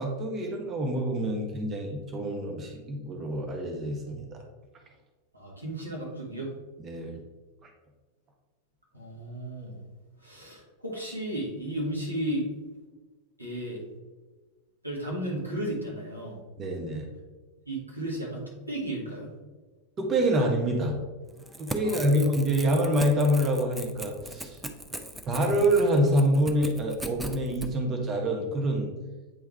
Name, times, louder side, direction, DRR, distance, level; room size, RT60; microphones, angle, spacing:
voice 1, 0.0-4.4 6.8-7.2 16.6-17.1 20.0-21.0 21.6-24.6 25.3-28.9, right 1 dB, 25° right, 2 dB, 0.9 m, -26 dB
voice 2, 5.3-6.5 8.9-9.8 10.2-12.5 13.4-13.8 14.8-16.4 17.6-19.3 21.8-22.3, right 1 dB, 85° right, -4 dB, 1.7 m, -34 dB
Crackle / Tearing, 21.3-27.7, right 1 dB, 5° right, 0.5 m, -39 dB
8.7 x 3.4 x 3.3 m, 1.3 s
figure-of-eight pair, 90°, 0 cm